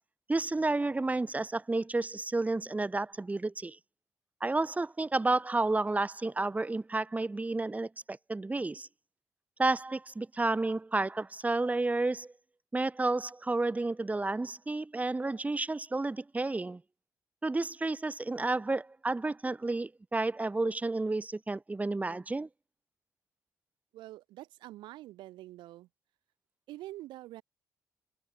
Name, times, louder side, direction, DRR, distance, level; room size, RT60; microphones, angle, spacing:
voice 1, 0.3-3.8 4.4-8.9 9.6-12.3 12.7-16.8 17.4-22.5, right 2 dB, 20° right, 0.5 m, -31 dB
voice 2, 23.9-25.9 26.7-27.4, right 16 dB, 90° right, 1.8 m, -46 dB
supercardioid pair, 55°, 8 cm